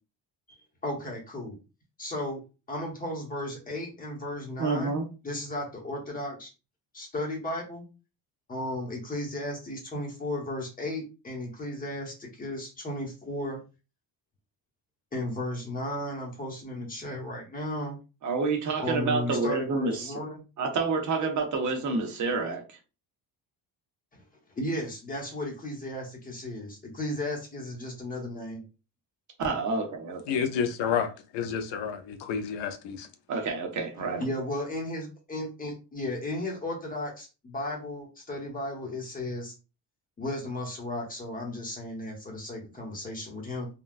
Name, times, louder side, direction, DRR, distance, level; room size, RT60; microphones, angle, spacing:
voice 1, 0.8-1.6 2.0-2.4 2.7-6.5 6.9-7.9 8.5-13.6 15.1-18.0 18.8-20.4 24.6-28.6 34.2-39.5 40.2-43.7, left 1 dB, 20° left, 0.9 m, -35 dB
voice 2, 4.6-5.1 18.2-20.2 20.6-22.8 29.4-30.4 33.3-34.3, right 4 dB, 45° right, 0.7 m, -28 dB
voice 3, 30.3-33.1, left 7 dB, 80° left, 0.7 m, -30 dB
3.7 x 2.3 x 2.4 m
cardioid pair, 165°, 42 cm